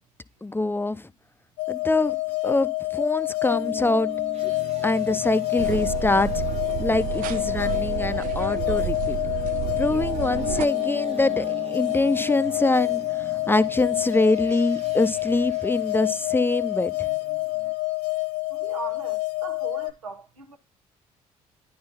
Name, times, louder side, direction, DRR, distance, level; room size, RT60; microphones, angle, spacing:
voice 1, 0.4-1.1 1.7-2.2 2.4-4.1 4.4-4.5 4.8-6.4 6.8-9.2 9.8-17.1, left 2 dB, 10° left, 0.6 m, -24 dB
sound 1, 1.6-19.9, left 24 dB, 70° left, 0.8 m, -28 dB
sound 2, 3.5-17.7, right 6 dB, 40° right, 0.9 m, -41 dB
sound 3, 5.6-10.7, right 14 dB, 55° right, 0.4 m, -31 dB
voice 2, 18.5-20.6, right 5 dB, 90° right, 0.9 m, -39 dB
10.0 x 3.8 x 4.1 m
figure-of-eight pair, 50°, 17 cm